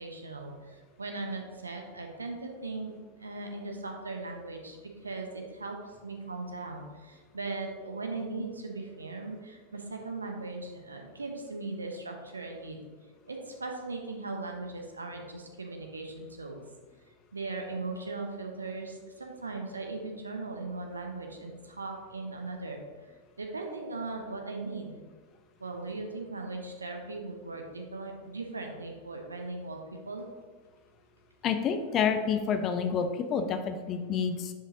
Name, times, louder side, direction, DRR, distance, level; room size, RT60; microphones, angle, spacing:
voice 1, 0.0-12.9 13.3-16.6 17.3-22.8 23.4-25.0 25.6-30.3, right 3 dB, 75° right, 3 dB, 1.0 m, -38 dB
voice 2, 31.4-34.5, left 6 dB, 30° left, 7 dB, 0.7 m, -28 dB
9.9 x 5.1 x 2.8 m, 1.5 s
figure-of-eight pair, 90°, 0 cm